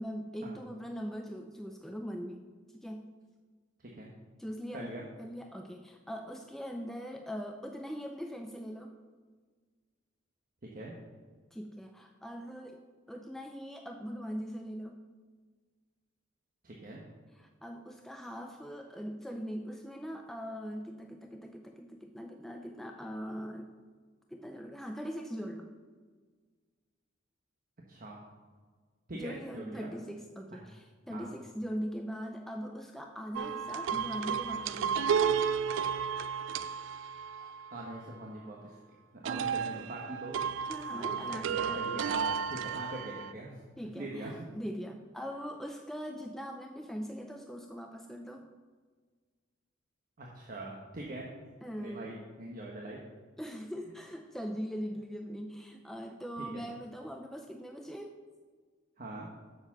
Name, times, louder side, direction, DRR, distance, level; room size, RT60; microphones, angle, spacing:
voice 1, 0.0-2.5 2.8-3.1 4.4-4.9 5.2-9.0 11.5-15.1 17.3-23.8 24.3-25.7 29.1-35.2 37.4-37.5 40.7-42.1 43.8-48.5 51.6-52.2 53.4-58.1, equal, ahead, 3 dB, 0.4 m, -41 dB
voice 2, 4.7-5.0 10.7-10.9 16.6-17.0 27.9-28.2 29.1-29.9 30.5-30.6 31.1-31.3 37.7-38.7 39.2-40.4 40.9-43.6 43.9-44.3 50.2-51.2 51.8-53.0 56.4-56.7 59.0-59.3, right 1 dB, 45° right, -2 dB, 1.2 m, -42 dB
sound 1, 33.3-38.0 39.2-43.3, right 7 dB, 75° right, 0.4 m, -33 dB
7.2 x 6.7 x 6.0 m, 1.5 s
head